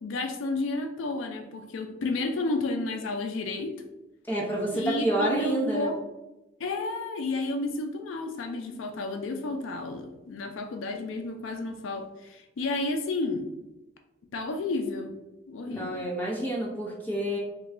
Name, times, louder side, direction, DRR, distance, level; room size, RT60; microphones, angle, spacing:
voice 1, 0.0-3.8 4.7-6.0 6.6-13.5 14.3-15.2 15.5-16.1, left 2 dB, 80° left, 5 dB, 0.4 m, -31 dB
voice 2, 4.3-5.9 15.7-17.4, right 1 dB, 10° left, -5 dB, 0.8 m, -29 dB
3.0 x 2.2 x 3.7 m, 1.0 s
head